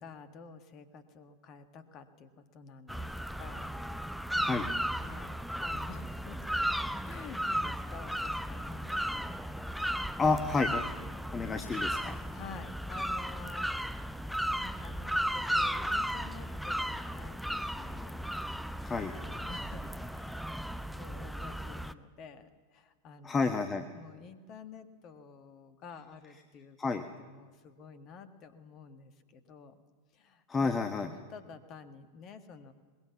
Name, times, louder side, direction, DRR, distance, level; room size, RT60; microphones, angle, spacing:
voice 1, 0.0-3.8 5.0-6.4 7.0-9.3 12.3-13.7 14.4-18.5 19.1-20.4 20.9-23.4 23.9-26.8 27.2-29.8 30.1-32.7, left 5 dB, 35° left, 9 dB, 1.7 m, -50 dB
sound 1, 2.9-21.9, equal, ahead, 0.7 m, -35 dB
voice 2, 4.4-4.7 10.2-10.8 11.3-12.1 18.8-19.1 23.2-23.9 26.8-27.0 30.5-31.1, left 4 dB, 15° left, 8 dB, 1.1 m, -30 dB
23.0 x 21.0 x 7.2 m, 1.5 s
figure-of-eight pair, 90°, 0 cm